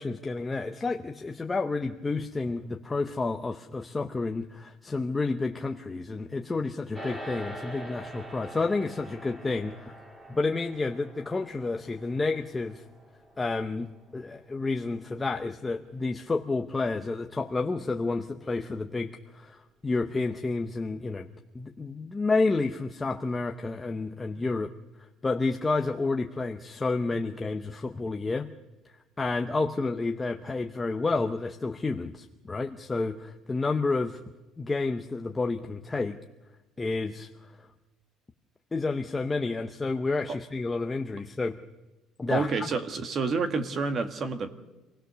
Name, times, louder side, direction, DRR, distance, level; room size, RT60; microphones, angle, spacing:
voice 1, 0.0-10.0 10.3-12.8 13.4-21.3 21.5-24.7 25.0-28.5 28.8-34.2 34.6-36.2 36.8-37.7 38.7-41.6 42.2-42.7, left 3 dB, 15° left, 4 dB, 0.7 m, -30 dB
sound 1, 6.9-16.5, right 1 dB, 10° right, 2.6 m, -45 dB
voice 2, 42.3-44.5, right 4 dB, 35° right, 8 dB, 1.5 m, -29 dB
27.0 x 17.0 x 6.8 m, 1.1 s
cardioid pair, 155°, 0 cm